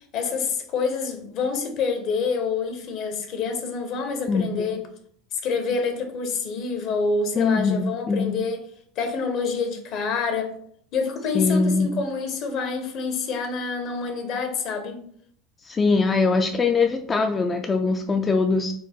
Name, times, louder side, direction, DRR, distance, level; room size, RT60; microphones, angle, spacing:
voice 1, 0.1-4.8 5.3-8.6 9.0-10.5 10.9-15.0, left 5 dB, 55° left, 6 dB, 0.9 m, -27 dB
voice 2, 4.3-4.7 7.3-8.4 11.3-11.9 15.6-18.7, left 4 dB, 25° left, 4 dB, 0.3 m, -22 dB
4.4 x 2.1 x 4.4 m, 0.64 s
supercardioid pair, 100°, 0 cm